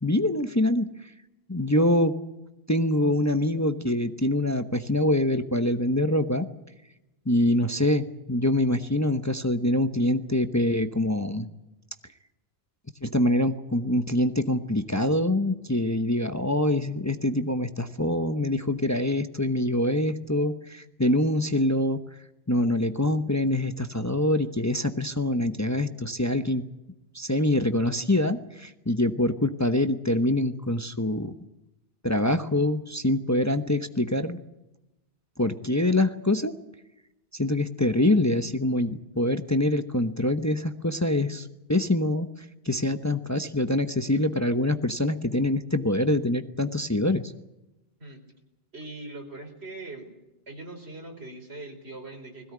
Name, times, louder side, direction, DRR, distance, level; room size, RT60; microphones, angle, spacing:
voice 1, 0.0-1.1 1.5-2.2 2.7-6.5 7.3-11.5 13.0-22.0 22.5-26.6 27.1-31.3 32.0-34.4 35.4-36.5 37.3-42.3 42.6-47.3, left 1 dB, 15° left, 9 dB, 1.0 m, -25 dB
voice 2, 48.7-50.1 50.5-52.5, right 2 dB, 80° right, 4 dB, 4.7 m, -41 dB
21.0 x 16.5 x 9.6 m, 0.95 s
omnidirectional pair, 1.1 m